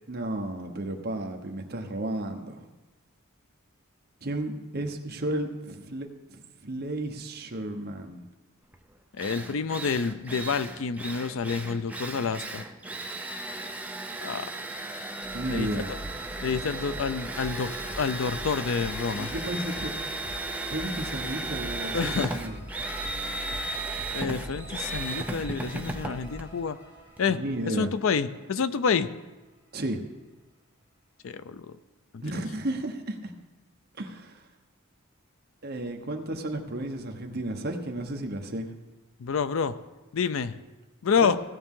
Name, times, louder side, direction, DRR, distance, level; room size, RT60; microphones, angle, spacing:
voice 1, 0.1-2.7 4.2-8.3 15.3-15.9 19.1-19.9 20.7-22.5 27.3-27.9 29.7-30.0 32.2-33.3 34.0-34.3 35.6-38.7 41.2-41.3, right 1 dB, 45° right, 3 dB, 1.0 m, -33 dB
Drill, 8.7-8.8 9.2-27.3, right 2 dB, 5° right, 0.5 m, -36 dB
voice 2, 9.2-12.6 14.2-14.5 15.5-15.8 16.4-19.3 21.9-22.4 24.1-26.8 27.2-27.4 27.7-29.1 31.2-31.7 32.1-32.2 39.2-39.7 40.1-40.6 41.0-41.4, left 5 dB, 65° left, 13 dB, 0.4 m, -28 dB
sound 1, 15.2-28.3, equal, 35° left, 3.2 m, -42 dB
16.0 x 7.0 x 3.7 m, 1.1 s
head